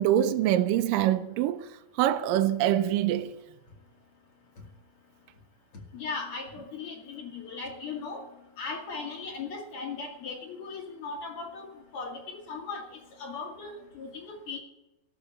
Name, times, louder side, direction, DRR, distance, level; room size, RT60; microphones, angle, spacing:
voice 1, 0.0-1.7 2.0-3.3, right 12 dB, 80° right, 2.1 m, -24 dB
voice 2, 5.9-8.2 8.6-11.7 11.9-12.8 13.2-14.6, left 4 dB, 40° left, 2.8 m, -38 dB
15.0 x 7.1 x 8.4 m
omnidirectional pair, 4.3 m